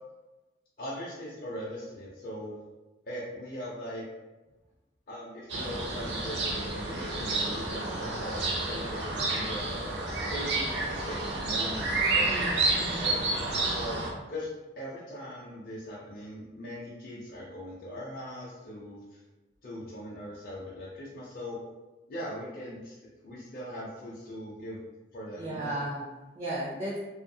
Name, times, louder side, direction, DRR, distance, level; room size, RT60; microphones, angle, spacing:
voice 1, 0.8-2.6 3.1-4.1 5.1-9.8 10.3-12.5 13.0-14.0 14.3-14.5 14.8-19.2 19.6-21.6 22.1-23.0 23.2-24.8 25.1-25.8, equal, 50° left, -7 dB, 0.5 m, -40 dB
sound 1, 5.5-14.1, right 2 dB, 85° right, 0.5 m, -30 dB
voice 2, 12.2-13.3 25.4-26.1 26.3-27.0, right 1 dB, 35° right, -5 dB, 0.4 m, -35 dB
2.6 x 2.4 x 2.6 m, 1.1 s
head